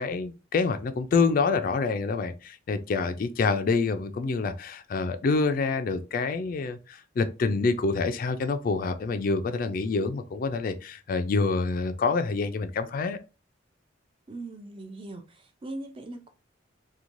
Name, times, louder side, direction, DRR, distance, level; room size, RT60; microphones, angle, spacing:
voice 1, 0.0-13.2, left 4 dB, 45° left, 0.3 m, -27 dB
voice 2, 14.3-16.3, right 2 dB, 25° right, 0.4 m, -40 dB
3.0 x 2.2 x 2.5 m
head